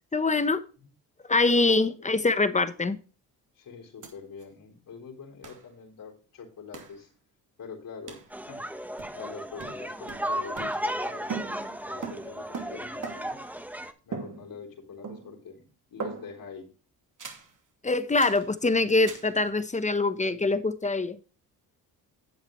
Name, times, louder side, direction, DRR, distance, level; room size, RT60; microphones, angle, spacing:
voice 1, 0.1-0.6 1.3-3.0 17.8-21.2, left 3 dB, 20° left, 1.0 m, -24 dB
voice 2, 1.8-2.1 3.6-7.1 7.6-8.2 8.5-8.6 9.1-11.5 11.8-13.4 14.1-15.6 15.9-16.7, left 6 dB, 55° left, 3.9 m, -45 dB
sound 1, 4.0-4.1 4.4-4.5 5.4-5.7 6.7-7.0 8.1-8.3 9.0-9.3 9.6-11.0 11.3-13.5 14.1-14.8 15.0-15.5 16.0-16.5 17.2-17.5 18.2-18.5 19.1-19.3, right 5 dB, 50° right, 2.5 m, -40 dB
sound 2, 8.3-13.9, equal, 5° right, 1.1 m, -34 dB
10.5 x 7.9 x 3.2 m
supercardioid pair, 70°, 40 cm